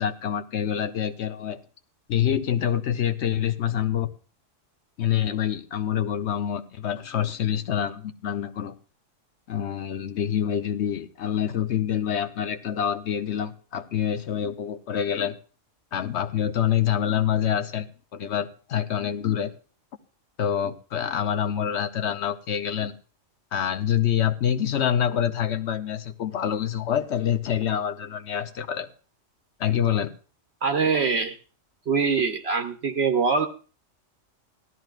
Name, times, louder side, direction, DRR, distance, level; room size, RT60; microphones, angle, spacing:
voice 1, 0.0-1.6 2.1-4.1 5.0-8.7 9.5-15.4 15.9-19.5 20.4-22.9 23.5-28.9 29.6-30.1, left 9 dB, 65° left, 0.9 m, -26 dB
voice 2, 30.6-31.4 31.9-33.5, right 5 dB, 60° right, 0.9 m, -23 dB
17.0 x 12.5 x 2.4 m
omnidirectional pair, 1.3 m